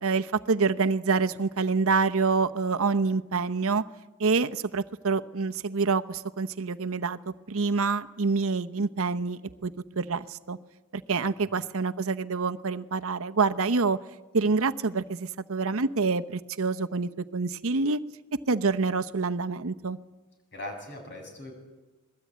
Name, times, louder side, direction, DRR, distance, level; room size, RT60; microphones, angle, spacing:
voice 1, 0.0-3.8 4.2-10.6 10.9-14.0 14.3-18.0 18.5-20.0, right 4 dB, 70° right, 9 dB, 0.9 m, -27 dB
voice 2, 11.1-11.5 20.5-21.5, left 1 dB, 55° left, 4 dB, 7.9 m, -41 dB
27.0 x 21.5 x 9.4 m, 1.1 s
head